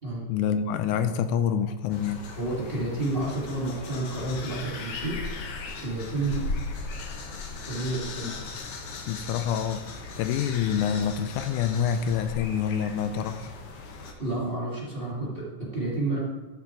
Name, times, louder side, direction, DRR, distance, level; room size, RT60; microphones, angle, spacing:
voice 1, 0.3-2.2 8.2-8.3 9.1-13.5, left 8 dB, 80° left, 9 dB, 2.0 m, -27 dB
sound 1, 1.9-14.1, left 3 dB, 60° left, 1.7 m, -37 dB
voice 2, 2.4-5.3 5.8-6.5 7.6-8.4 14.2-16.2, right 2 dB, 20° right, -6 dB, 1.9 m, -30 dB
13.0 x 5.9 x 4.5 m, 1.3 s
omnidirectional pair, 3.6 m